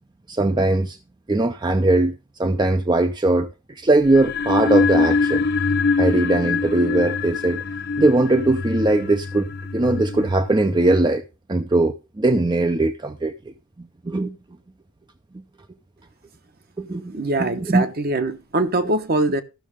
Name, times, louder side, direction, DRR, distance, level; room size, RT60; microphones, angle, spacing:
voice 1, 0.3-1.0 1.3-2.1 2.4-3.5 3.8-5.4 6.0-7.6 8.0-11.2 11.5-13.3 14.1-14.3 16.8-17.1 17.4-17.8 18.8-18.9, right 2 dB, 20° right, 0.5 m, -20 dB
sound 1, 4.0-11.0, left 4 dB, 50° left, 0.7 m, -24 dB
voice 2, 17.1-19.4, right 2 dB, 45° right, 1.0 m, -22 dB
13.0 x 6.4 x 4.8 m
head